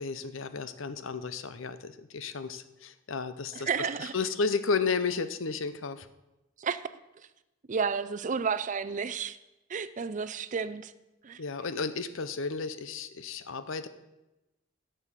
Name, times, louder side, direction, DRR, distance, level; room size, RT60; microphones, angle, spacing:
voice 1, 0.0-3.7 4.0-6.1 11.4-13.9, left 4 dB, 80° left, 12 dB, 0.8 m, -33 dB
voice 2, 3.5-4.1 6.6-6.9 7.7-9.4 9.7-10.9 11.2-11.4, right 6 dB, 40° right, 13 dB, 0.5 m, -31 dB
10.5 x 6.8 x 7.5 m, 0.99 s
head